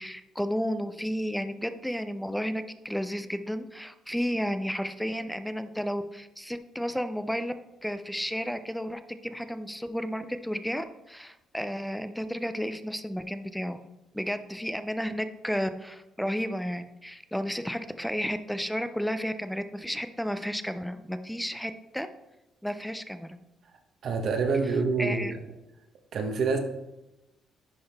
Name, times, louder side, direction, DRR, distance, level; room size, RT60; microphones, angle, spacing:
voice 1, 0.0-7.5 7.8-13.8 14.1-22.1 22.6-23.4 25.0-25.3, equal, ahead, 10 dB, 0.5 m, -32 dB
voice 2, 24.0-25.2 26.1-26.6, right 4 dB, 60° right, 5 dB, 1.0 m, -26 dB
10.5 x 3.8 x 3.4 m, 0.94 s
cardioid pair, 85°, 0 cm